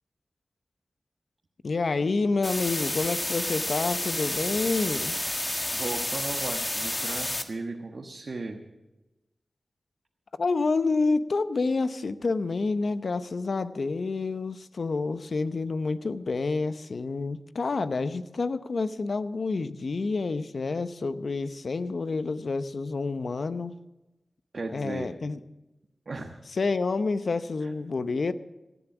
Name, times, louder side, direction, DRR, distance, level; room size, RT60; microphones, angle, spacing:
voice 1, 1.6-5.2 10.4-23.8 24.7-25.4 26.6-28.3, left 3 dB, 70° left, 12 dB, 0.7 m, -28 dB
sound 1, 2.4-7.4, left 1 dB, 25° left, 1.6 m, -30 dB
voice 2, 5.7-8.6 24.5-25.1 26.1-26.4 27.6-27.7, right 3 dB, 65° right, 2 dB, 1.2 m, -36 dB
17.0 x 11.0 x 6.1 m, 1.0 s
cardioid pair, 45°, 0 cm